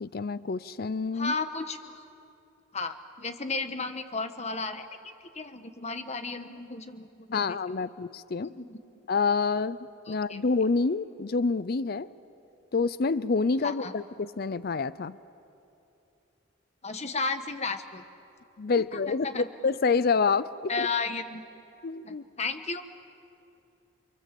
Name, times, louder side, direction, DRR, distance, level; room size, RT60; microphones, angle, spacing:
voice 1, 0.0-1.3 7.3-8.5 9.1-9.8 10.1-12.1 12.7-15.2 18.6-20.9 21.8-22.2, left 4 dB, 50° left, 17 dB, 0.5 m, -27 dB
voice 2, 1.1-1.9 2.7-7.5 8.4-8.8 10.1-10.4 13.6-13.9 16.8-18.0 18.9-19.5 20.7-21.4 22.0-22.8, left 4 dB, 35° left, 9 dB, 1.3 m, -34 dB
29.0 x 24.5 x 7.6 m, 2.8 s
head